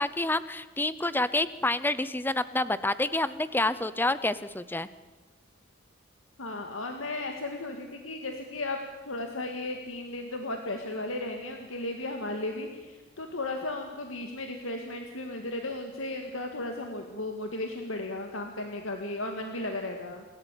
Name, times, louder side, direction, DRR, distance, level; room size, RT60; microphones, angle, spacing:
voice 1, 0.0-4.9, left 2 dB, 10° left, 15 dB, 0.7 m, -28 dB
voice 2, 6.4-8.8 9.1-20.2, left 2 dB, 85° left, 3 dB, 2.1 m, -35 dB
28.5 x 13.5 x 9.2 m, 1.3 s
head